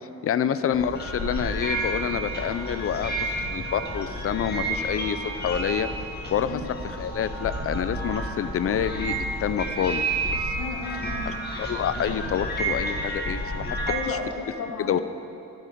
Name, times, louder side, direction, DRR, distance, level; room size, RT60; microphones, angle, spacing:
voice 1, 0.2-5.9 6.3-6.6 6.8-9.1 9.4-10.1 10.4-10.6 11.3-13.8 14.1-14.2 14.8-15.0, left 8 dB, 45° left, 12 dB, 0.5 m, -27 dB
sound 1, 0.7-14.0, right 2 dB, 30° left, 1.7 m, -30 dB
voice 2, 10.6-11.3 13.9-15.0, left 4 dB, 80° left, 2 dB, 1.7 m, -33 dB
13.0 x 12.0 x 5.1 m, 2.8 s
cardioid pair, 145°, 31 cm